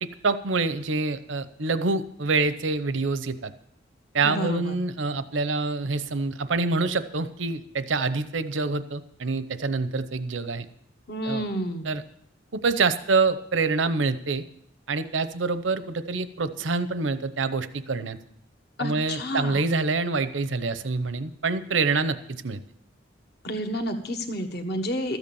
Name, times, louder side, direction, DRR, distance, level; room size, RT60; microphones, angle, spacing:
voice 1, 0.0-3.5 4.1-10.6 11.2-11.4 11.8-12.0 12.5-14.4 14.9-18.2 18.8-22.6, right 3 dB, 85° right, 12 dB, 0.8 m, -26 dB
voice 2, 4.2-4.8 11.1-12.0 18.8-19.7 23.4-25.2, equal, 55° left, 6 dB, 1.3 m, -30 dB
13.5 x 8.2 x 7.0 m, 0.68 s
head